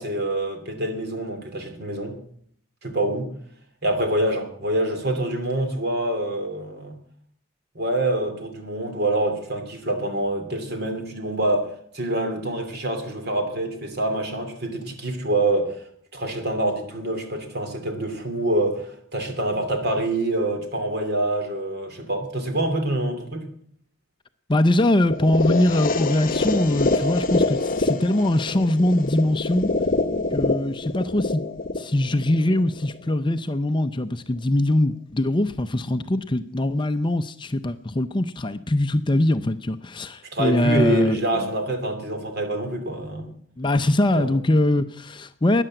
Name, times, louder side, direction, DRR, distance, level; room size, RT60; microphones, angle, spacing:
voice 1, 0.0-2.2 2.8-3.3 3.8-6.9 7.7-15.8 16.1-23.4 40.3-43.3 44.2-44.3, right 1 dB, 50° right, 2.8 m, -26 dB
voice 2, 24.5-29.7 30.3-31.4 31.8-41.2 43.6-45.6, left 1 dB, 25° left, 0.5 m, -22 dB
sound 1, 25.1-33.1, left 3 dB, 45° left, 0.9 m, -25 dB
13.5 x 10.0 x 7.8 m
head